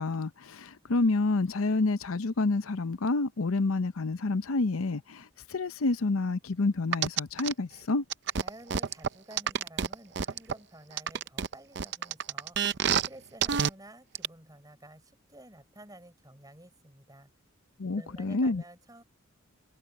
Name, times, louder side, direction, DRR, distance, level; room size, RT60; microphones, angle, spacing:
voice 1, 0.0-8.0 17.8-18.6, left 3 dB, 85° left, 0.7 m, -28 dB
sound 1, 6.9-7.5 8.1-10.5 11.0-13.1 13.4-13.7 14.1-14.3, right 7 dB, 55° right, 0.6 m, -28 dB
voice 2, 8.4-12.8 13.1-17.3 17.9-19.0, right 1 dB, 15° right, 5.3 m, -52 dB
head